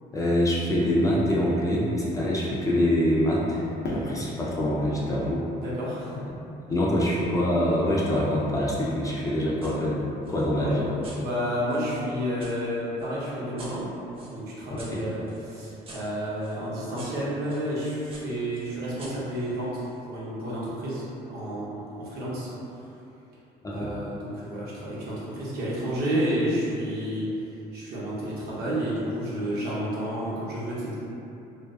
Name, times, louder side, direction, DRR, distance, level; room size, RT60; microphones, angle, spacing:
voice 1, 0.1-5.5 6.7-10.0 10.3-10.9 14.7-14.8 23.6-23.9, equal, 20° left, -5 dB, 0.4 m, -25 dB
Fireworks, 3.8-6.9, left 1 dB, 70° left, 0.5 m, -38 dB
voice 2, 5.6-6.2 10.5-10.8 11.1-13.9 14.3-22.5 23.7-27.3 27.7-31.0, equal, 70° right, -8 dB, 0.8 m, -30 dB
sound 1, 9.6-9.8 10.2-12.5 13.0-17.7 18.1-20.0, right 1 dB, 35° right, 0.6 m, -49 dB
2.5 x 2.3 x 2.2 m, 2.9 s
cardioid pair, 110°, 17 cm